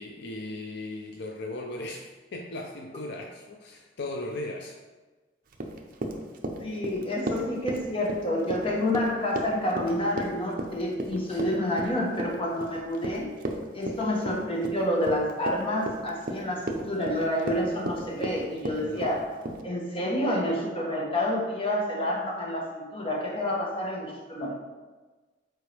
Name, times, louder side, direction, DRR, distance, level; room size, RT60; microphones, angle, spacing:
voice 1, 0.0-4.8 11.3-11.6 18.8-19.2, left 2 dB, 65° left, 2 dB, 0.5 m, -37 dB
Run, 5.5-19.6, right 1 dB, 50° right, 0.7 m, -35 dB
voice 2, 6.6-13.3 13.7-19.3 19.6-24.6, left 1 dB, 30° left, -2 dB, 1.2 m, -28 dB
7.8 x 4.5 x 3.4 m, 1.3 s
head